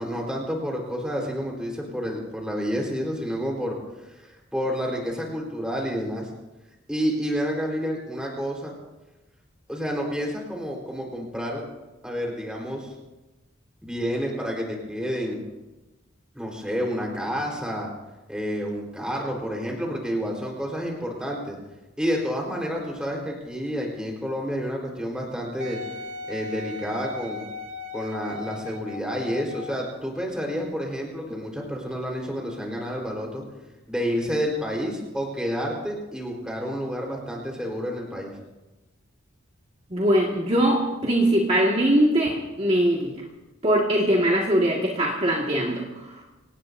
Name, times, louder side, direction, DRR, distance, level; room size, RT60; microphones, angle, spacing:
voice 1, 0.0-3.8 4.0-6.3 6.9-8.7 9.7-11.6 12.0-12.9 13.8-15.4 16.3-17.9 18.3-21.6 22.0-25.8 26.3-27.5 27.9-33.4 33.9-38.3, equal, 5° right, 0 dB, 4.0 m, -29 dB
Wind instrument woodwind instrument, 25.6-29.9 30.6-30.7, left 3 dB, 80° right, 1.7 m, -38 dB
voice 2, 39.9-43.1 43.6-46.2, right 1 dB, 30° right, -3 dB, 1.9 m, -22 dB
26.0 x 18.0 x 2.7 m, 1.1 s
head